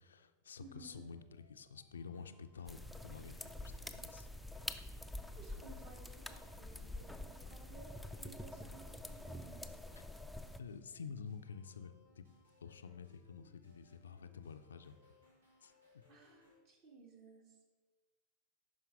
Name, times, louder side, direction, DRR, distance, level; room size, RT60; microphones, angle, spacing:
voice 1, 0.0-4.3 10.0-10.1 10.6-12.3 12.6-15.0 15.6-15.7, left 6 dB, 70° left, 10 dB, 0.4 m, -50 dB
voice 2, 0.6-1.0 5.4-7.9 8.2-9.6 16.1-17.6, right 3 dB, 45° right, 2 dB, 1.4 m, -58 dB
sound 1, 0.9-16.6, left 3 dB, 80° right, 2.2 m, -70 dB
sound 2, 2.7-10.6, left 1 dB, ahead, 0.4 m, -47 dB
11.5 x 4.5 x 3.5 m, 1.3 s
figure-of-eight pair, 90°, 0 cm